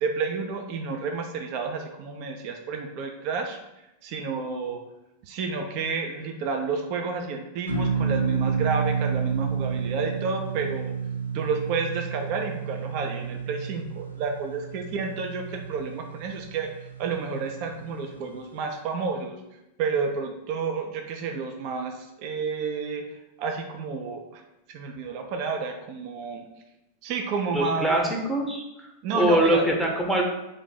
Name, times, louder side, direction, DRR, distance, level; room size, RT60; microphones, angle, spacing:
voice 1, 0.0-3.6 4.0-4.8 5.2-10.9 11.3-16.7 17.0-19.4 19.8-23.0 23.4-24.4 24.7-26.4 27.0-28.0 29.0-29.6, right 5 dB, 45° right, 4 dB, 0.4 m, -30 dB
sound 1, 7.7-18.2, right 5 dB, 85° left, 0.5 m, -30 dB
voice 2, 27.5-28.9 29.1-30.2, right 1 dB, ahead, 0 dB, 0.7 m, -23 dB
3.2 x 2.6 x 3.9 m, 0.90 s
figure-of-eight pair, 90°, 0 cm